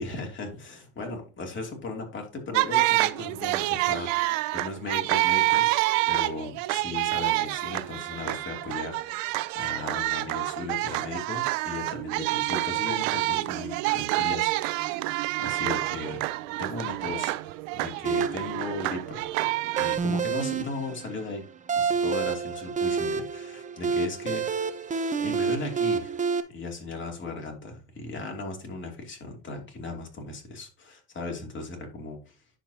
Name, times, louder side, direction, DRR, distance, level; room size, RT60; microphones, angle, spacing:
voice 1, 0.0-5.7 6.1-15.0 15.4-16.2 16.6-19.3 19.7-21.4 21.7-24.8 25.2-26.2 26.5-32.3, left 3 dB, 30° left, 2 dB, 2.9 m, -37 dB
sound 1, 2.5-20.0, right 19 dB, 85° right, 0.6 m, -28 dB
sound 2, 18.0-26.4, right 5 dB, 20° right, 0.8 m, -29 dB
10.0 x 6.8 x 2.9 m, 0.32 s
supercardioid pair, 120°, 37 cm